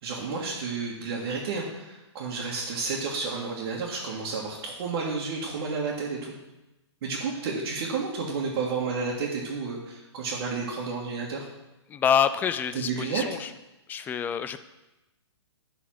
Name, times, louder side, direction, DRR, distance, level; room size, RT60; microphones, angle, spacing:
voice 1, 0.0-6.3 7.0-11.5 12.7-13.2, right 4 dB, 50° right, -5 dB, 1.8 m, -31 dB
voice 2, 11.9-13.5 13.9-14.6, left 8 dB, 10° left, 12 dB, 0.3 m, -26 dB
11.0 x 4.1 x 6.0 m, 0.99 s
hypercardioid pair, 130°, 15 cm